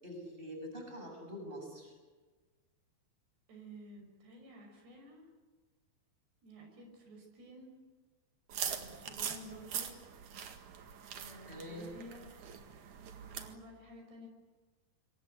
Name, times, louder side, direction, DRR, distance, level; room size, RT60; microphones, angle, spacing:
voice 1, 0.0-1.9 11.5-11.9, equal, 10° right, 2 dB, 7.4 m, -45 dB
voice 2, 3.5-5.3 6.4-7.7 8.8-9.9 11.2-12.3 13.4-14.3, equal, 75° right, 3 dB, 7.9 m, -52 dB
sound 1, 8.5-13.5, right 8 dB, 55° right, 2.8 m, -42 dB
27.0 x 23.5 x 8.4 m, 1.3 s
omnidirectional pair, 4.7 m